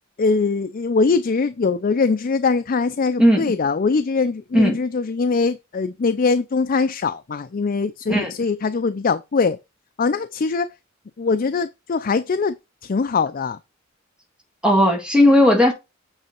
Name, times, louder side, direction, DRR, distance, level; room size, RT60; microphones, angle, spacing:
voice 1, 0.2-9.6 10.0-10.7 11.2-12.5 12.8-13.6, left 4 dB, 40° left, 0.4 m, -22 dB
voice 2, 3.2-3.5 4.5-4.8 8.1-8.3 14.6-15.7, left 1 dB, 5° right, 1.7 m, -15 dB
8.9 x 3.5 x 4.4 m
head